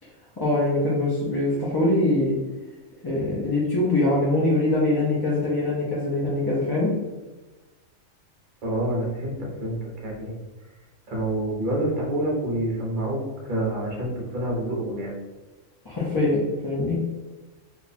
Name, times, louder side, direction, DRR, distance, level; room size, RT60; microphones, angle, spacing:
voice 1, 0.4-2.4 3.0-6.9 15.8-17.0, left 2 dB, 35° left, -7 dB, 0.4 m, -23 dB
voice 2, 8.6-10.4 11.1-15.1, right 1 dB, 45° right, -2 dB, 0.9 m, -27 dB
2.8 x 2.2 x 4.1 m, 1.2 s
omnidirectional pair, 1.4 m